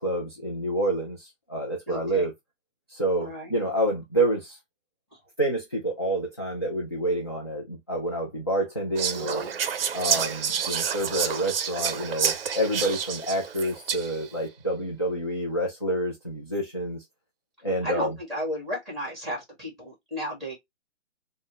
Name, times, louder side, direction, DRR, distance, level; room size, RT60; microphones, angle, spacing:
voice 1, 0.0-2.3 2.9-4.6 5.4-9.4 9.9-17.0 17.6-18.1, right 1 dB, 25° left, 0.3 m, -28 dB
voice 2, 1.9-2.3 3.2-3.5 5.1-5.2 9.1-9.6 17.8-20.6, equal, ahead, 1.6 m, -34 dB
Whispering, 9.0-14.3, right 7 dB, 55° right, 0.5 m, -29 dB
3.8 x 2.1 x 2.9 m
hypercardioid pair, 165°, 36 cm